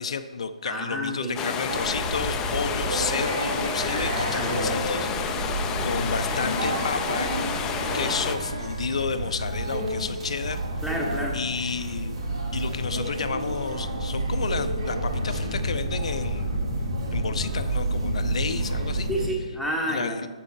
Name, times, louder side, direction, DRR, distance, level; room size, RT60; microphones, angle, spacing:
voice 1, 0.0-5.1 5.8-7.3 7.9-10.8 11.3-12.2 12.5-16.5 17.1-19.1 19.9-20.3, left 5 dB, 60° left, 11 dB, 0.5 m, -31 dB
voice 2, 0.6-1.4 4.3-4.9 10.8-11.4 19.1-20.3, equal, 5° right, 0 dB, 1.2 m, -30 dB
sound 1, 1.4-8.4, left 7 dB, 15° left, 0.5 m, -30 dB
sound 2, 1.7-19.3, right 1 dB, 60° right, 2.4 m, -29 dB
7.1 x 7.0 x 4.5 m, 1.3 s
figure-of-eight pair, 140°, 4 cm